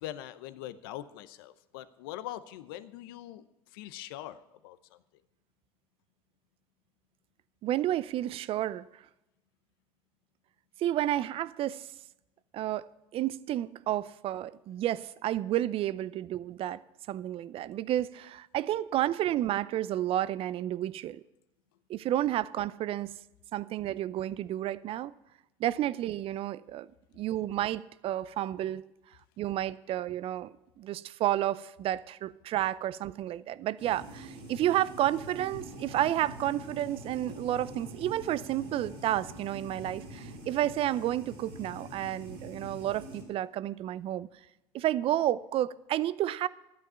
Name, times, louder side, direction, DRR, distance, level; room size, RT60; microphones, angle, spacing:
voice 1, 0.0-3.4 3.7-5.0, left 13 dB, 80° left, 0.7 m, -42 dB
voice 2, 7.6-8.9 10.8-11.9 12.5-12.9 13.1-16.8 17.1-21.2 21.9-23.1 23.5-25.1 25.6-26.9 27.1-28.9 29.4-44.3 44.7-46.5, right 13 dB, 55° right, 0.5 m, -31 dB
sound 1, 33.8-43.2, equal, 80° right, 3.5 m, -45 dB
12.0 x 9.5 x 5.6 m
hypercardioid pair, 75°, 12 cm